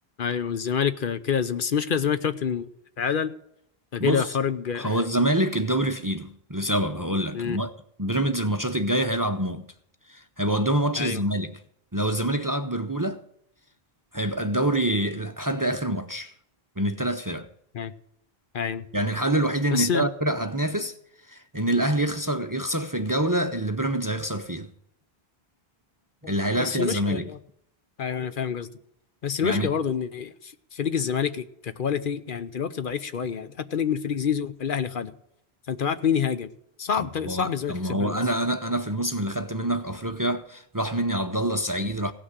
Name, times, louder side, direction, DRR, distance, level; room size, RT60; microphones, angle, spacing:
voice 1, 0.2-2.7 3.0-3.3 3.9-5.0 7.3-7.6 11.0-11.2 17.7-17.9 18.5-18.9 19.7-20.0 26.2-27.4 28.0-28.7 29.2-35.1 35.7-36.5 36.8-38.2, left 7 dB, 60° left, 0.9 m, -27 dB
voice 2, 4.0-4.4 4.7-7.7 8.0-9.7 10.1-11.6 11.9-13.2 14.1-16.3 16.8-17.5 18.9-20.9 21.3-24.7 26.3-27.3 29.4-29.7 37.0-42.1, right 1 dB, 25° right, 0.6 m, -26 dB
16.5 x 6.2 x 8.0 m
omnidirectional pair, 1.0 m